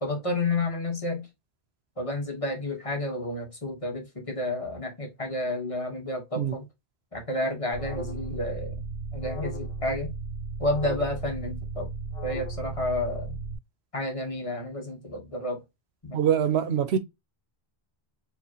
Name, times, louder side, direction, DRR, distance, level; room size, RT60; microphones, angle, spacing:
voice 1, 0.0-1.3 2.0-6.6 7.1-8.8 9.1-10.1 10.6-11.9 12.2-13.4 13.9-15.6 16.0-16.2, left 2 dB, 35° left, 1.4 m, -30 dB
Alarm, 7.7-13.5, right 3 dB, 80° left, 1.7 m, -35 dB
voice 2, 16.1-17.0, right 9 dB, 85° right, 0.9 m, -24 dB
4.9 x 3.0 x 2.9 m
omnidirectional pair, 1.1 m